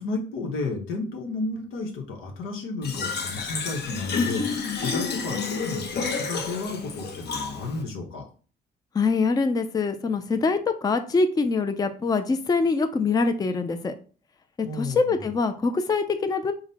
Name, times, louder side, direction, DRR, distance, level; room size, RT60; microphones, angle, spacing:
voice 1, 0.0-8.2 14.6-15.2, left 3 dB, 90° left, 1 dB, 1.0 m, -32 dB
Fill (with liquid), 2.8-7.8, left 5 dB, 55° left, 0.7 m, -30 dB
voice 2, 8.9-13.9 14.6-16.5, left 4 dB, 20° left, 8 dB, 0.4 m, -24 dB
3.9 x 2.1 x 4.0 m, 0.39 s
cardioid pair, 90°, 20 cm